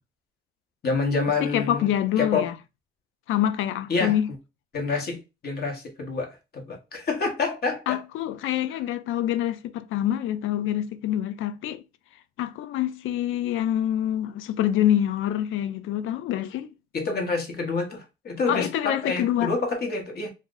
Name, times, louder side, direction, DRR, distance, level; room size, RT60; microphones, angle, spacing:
voice 1, 0.8-1.9 2.2-2.5 3.9-4.2 4.7-8.0 16.9-20.3, left 4 dB, 50° left, 1.3 m, -27 dB
voice 2, 1.4-2.5 3.3-4.3 4.9-5.0 7.9-11.8 12.4-16.7 18.5-19.5, left 11 dB, 85° left, 0.4 m, -26 dB
2.6 x 2.5 x 3.8 m
cardioid pair, 90°, 20 cm